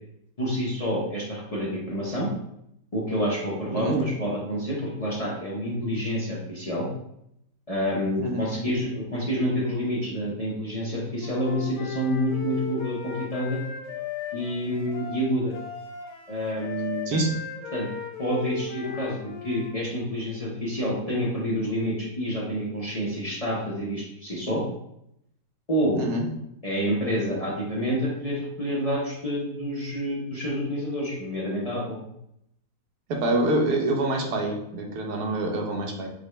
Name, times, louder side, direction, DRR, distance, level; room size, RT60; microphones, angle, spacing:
voice 1, 0.4-2.3 2.9-6.9 7.7-13.6 14.3-15.5 16.3-17.1 17.7-17.9 18.2-24.6 25.7-26.0 26.6-32.0, equal, 40° left, -6 dB, 0.5 m, -28 dB
Wind instrument woodwind instrument, 11.2-19.7, left 5 dB, 75° left, 1.2 m, -36 dB
voice 2, 25.9-26.3 33.1-36.1, right 2 dB, 85° right, 1 dB, 1.3 m, -26 dB
4.9 x 2.3 x 3.2 m, 0.78 s
omnidirectional pair, 1.7 m